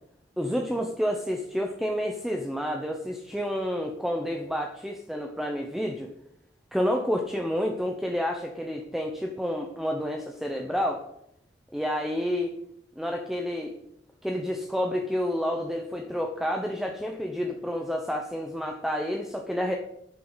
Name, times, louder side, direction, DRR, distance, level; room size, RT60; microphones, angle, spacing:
voice 1, 0.4-6.1 6.7-11.0 11.7-12.5 13.0-13.7 14.2-19.8, equal, ahead, 2 dB, 0.9 m, -29 dB
12.5 x 10.0 x 4.1 m, 0.77 s
head